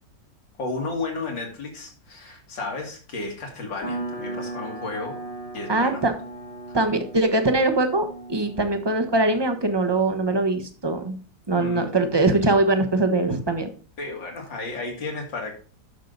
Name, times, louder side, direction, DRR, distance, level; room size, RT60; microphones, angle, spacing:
voice 1, 0.6-5.2 5.5-6.0 6.7-6.8 11.5-12.0 14.0-15.5, left 3 dB, 85° left, 1 dB, 3.1 m, -33 dB
sound 1, 3.8-10.0, right 2 dB, 65° left, 2.9 m, -37 dB
voice 2, 5.7-6.1 6.7-11.2 11.5-13.7, right 2 dB, 20° right, 7 dB, 0.7 m, -22 dB
10.0 x 6.6 x 4.0 m, 0.39 s
omnidirectional pair, 2.0 m